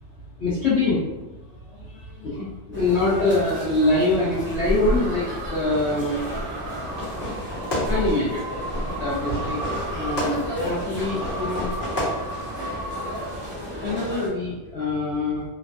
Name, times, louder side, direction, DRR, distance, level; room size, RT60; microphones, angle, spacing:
voice 1, 0.4-1.0 1.5-6.6 7.9-9.6 9.9-11.7 13.8-15.4, left 2 dB, 70° left, -10 dB, 0.6 m, -25 dB
sound 1, 2.7-14.3, equal, 15° right, 0.5 m, -32 dB
sound 2, 4.1-13.8, right 2 dB, 75° right, 0.8 m, -36 dB
Fireworks, 6.8-12.8, left 1 dB, 40° left, 0.8 m, -32 dB
3.1 x 2.2 x 2.5 m, 1.1 s
omnidirectional pair, 2.0 m